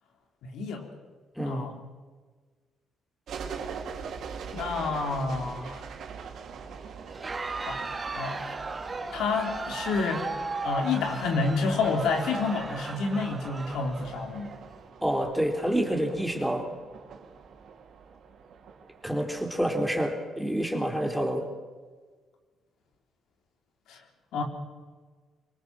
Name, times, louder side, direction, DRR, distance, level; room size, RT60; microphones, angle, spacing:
voice 1, 0.4-0.9 1.4-1.7 4.5-5.9 7.6-7.8 8.1-8.5 9.1-10.3 10.6-14.5 23.9-24.0 24.3-24.4, left 4 dB, 80° left, 3 dB, 3.7 m, -29 dB
voice 2, 1.4-1.7 15.0-16.7 19.0-21.5, right 1 dB, ahead, 3 dB, 3.6 m, -28 dB
sound 1, 3.3-19.8, right 6 dB, 70° right, 3.4 m, -43 dB
Crowd, 7.0-14.6, right 3 dB, 25° right, 2.5 m, -36 dB
24.5 x 20.0 x 6.2 m, 1.4 s
cardioid pair, 90°, 0 cm